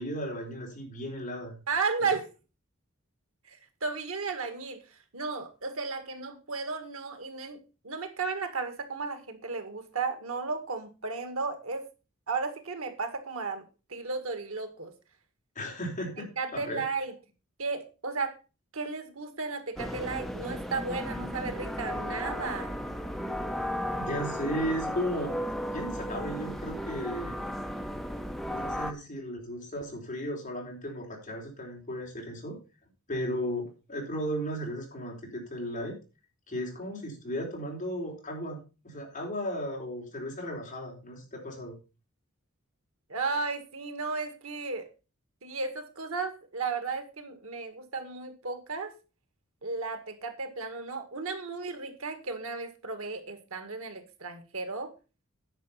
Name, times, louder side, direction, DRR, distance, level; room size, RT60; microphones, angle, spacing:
voice 1, 0.0-1.6 2.0-2.1 15.6-16.8 24.0-25.3 25.7-27.4 28.5-32.6 33.1-36.0 36.5-38.6 38.8-41.7, equal, 35° left, -1 dB, 4.0 m, -35 dB
voice 2, 1.7-2.3 3.5-7.6 7.8-11.9 12.3-13.6 13.9-14.9 16.4-17.1 17.6-18.3 18.7-22.8 43.1-44.9 45.4-48.9 49.6-54.9, right 4 dB, 85° right, 8 dB, 1.8 m, -34 dB
sound 1, 19.8-28.9, equal, ahead, 0.7 m, -35 dB
10.0 x 6.0 x 5.6 m, 0.32 s
head